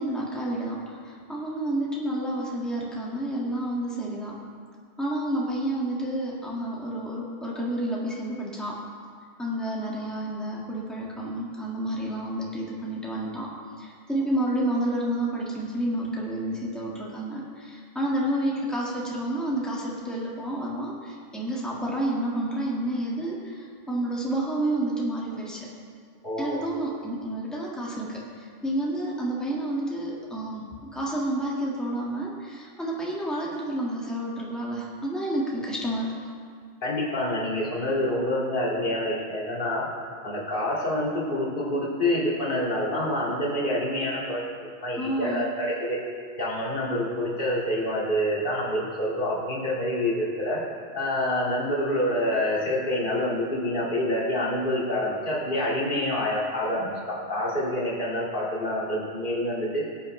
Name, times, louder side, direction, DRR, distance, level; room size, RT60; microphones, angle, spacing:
voice 1, 0.0-4.4 5.0-8.8 9.4-13.5 13.8-25.7 26.4-36.1 45.0-45.5, right 1 dB, ahead, -5 dB, 1.8 m, -30 dB
voice 2, 26.2-26.6 36.8-39.9 40.2-44.4 44.8-46.0 46.4-50.6 50.9-59.8, left 1 dB, 50° left, -5 dB, 2.4 m, -27 dB
17.5 x 8.8 x 3.2 m, 2.1 s
omnidirectional pair, 1.1 m